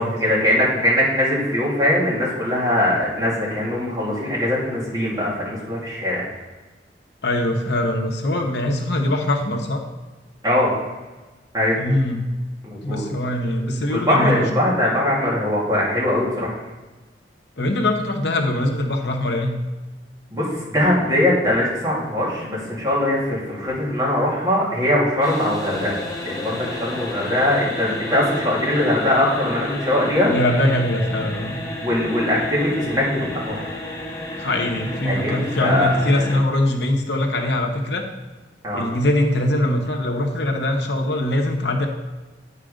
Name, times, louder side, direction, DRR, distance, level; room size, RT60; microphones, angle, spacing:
voice 1, 0.0-6.3 10.4-10.7 11.5-11.8 12.6-13.0 13.9-16.6 20.3-30.3 31.8-33.8 35.0-36.0 38.6-38.9, left 1 dB, 25° right, -6 dB, 2.9 m, -21 dB
voice 2, 7.2-9.8 11.8-12.3 12.8-14.4 17.6-19.5 30.3-31.6 34.4-38.0 38.7-41.9, left 1 dB, 70° left, 3 dB, 1.0 m, -22 dB
sound 1, 25.2-36.4, left 1 dB, 20° left, 1.5 m, -32 dB
9.1 x 4.8 x 5.0 m, 1.2 s
head